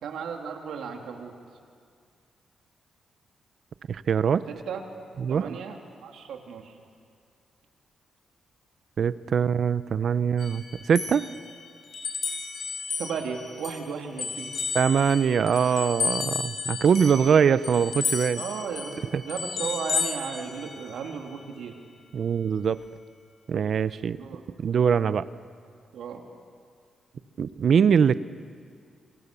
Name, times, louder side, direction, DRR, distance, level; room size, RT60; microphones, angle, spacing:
voice 1, 0.0-1.3 4.5-4.8 5.3-6.8 13.0-14.5 18.3-21.8 24.0-24.4 25.9-26.2, right 6 dB, 85° right, 2 dB, 3.0 m, -35 dB
voice 2, 3.9-4.4 5.2-5.6 9.0-11.2 14.7-18.4 19.1-19.2 22.1-22.8 23.5-24.2 24.6-25.2 27.4-28.2, right 7 dB, 65° right, 15 dB, 0.7 m, -22 dB
sound 1, 10.4-13.8 14.2-21.1, left 5 dB, 60° left, 4.7 m, -33 dB
30.0 x 24.0 x 6.9 m, 2.2 s
cardioid pair, 80°, 0 cm